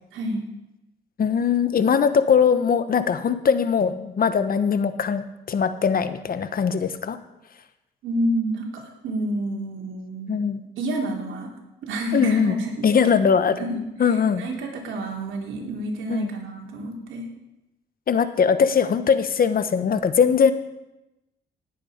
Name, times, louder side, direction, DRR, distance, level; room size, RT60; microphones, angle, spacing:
voice 1, 0.1-0.4 8.0-10.5 10.8-11.5 11.8-12.9 13.2-13.3 13.6-17.3, right 1 dB, 80° right, 0 dB, 3.1 m, -29 dB
voice 2, 1.2-7.2 10.3-10.6 12.1-12.5 12.8-13.6 14.0-14.4 16.1-16.3 18.1-20.5, left 6 dB, 45° left, 11 dB, 1.1 m, -21 dB
18.5 x 8.5 x 5.1 m, 0.96 s
cardioid pair, 90°, 20 cm